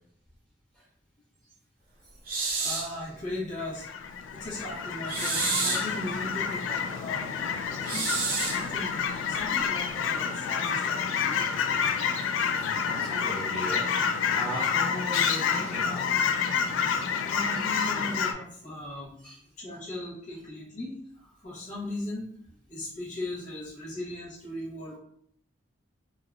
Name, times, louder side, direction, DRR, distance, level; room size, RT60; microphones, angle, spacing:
sound 1, 2.3-2.9 5.1-5.9 7.9-8.7, right 4 dB, 45° right, 0.6 m, -29 dB
voice 1, 2.6-3.9 4.3-8.1 8.5-11.5 16.8-19.2 19.6-22.3 22.7-25.0, left 1 dB, 40° left, -6 dB, 0.8 m, -38 dB
Fowl / Chirp tweet, 3.6-18.3, left 6 dB, 75° left, 0.3 m, -29 dB
voice 2, 12.7-13.8 14.3-16.0 17.5-17.6 19.2-19.4, equal, 5° left, -9 dB, 1.3 m, -37 dB
3.4 x 2.3 x 2.2 m, 0.68 s
head